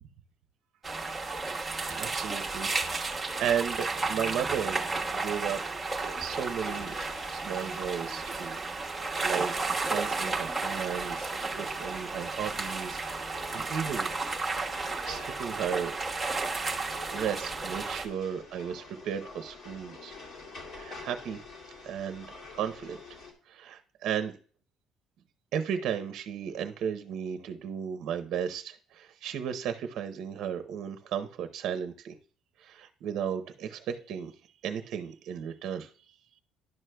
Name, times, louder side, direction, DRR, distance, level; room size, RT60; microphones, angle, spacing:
sound 1, 0.8-18.1, right 3 dB, 10° right, 0.9 m, -33 dB
voice 1, 1.9-2.7 3.0-5.6 6.0-7.0 7.3-8.6 8.9-14.1 15.0-15.9 17.1-20.1 20.7-21.4 21.8-23.0 23.5-24.3 25.5-32.2 32.6-34.3 34.6-35.9, right 8 dB, 60° right, 9 dB, 0.6 m, -35 dB
sound 2, 5.8-23.3, left 3 dB, 55° left, 1.9 m, -48 dB
11.0 x 6.2 x 2.2 m, 0.41 s
cardioid pair, 155°, 0 cm